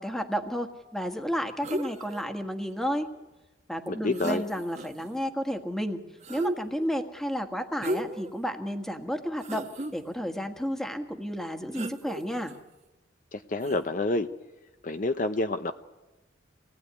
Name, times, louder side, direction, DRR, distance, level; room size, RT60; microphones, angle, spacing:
voice 1, 0.0-3.1 3.7-6.0 6.3-9.7 9.9-12.5, equal, ahead, 6 dB, 1.7 m, -32 dB
sound 1, 1.6-2.2 3.9-4.0 4.1-5.1 6.2-6.9 7.8-8.3 8.8-8.9 9.4-9.9 11.7-12.6 13.6-13.8, right 1 dB, 35° right, 1.3 m, -34 dB
voice 2, 3.9-4.4 13.3-14.3 14.8-15.7, left 2 dB, 45° left, 8 dB, 0.8 m, -28 dB
26.0 x 19.0 x 9.7 m, 1.1 s
head